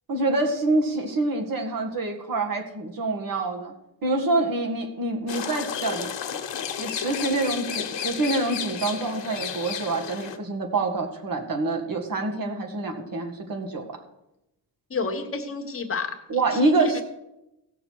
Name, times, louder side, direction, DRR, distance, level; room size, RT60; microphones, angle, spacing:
voice 1, 0.1-3.7 4.0-6.1 6.8-13.8 16.3-17.0, right 2 dB, 50° right, 4 dB, 1.9 m, -26 dB
sound 1, 5.3-10.4, left 8 dB, 75° left, 1.2 m, -32 dB
voice 2, 14.9-17.0, left 4 dB, 30° left, 4 dB, 1.2 m, -31 dB
17.5 x 6.6 x 4.6 m, 0.88 s
wide cardioid pair, 170°, 44 cm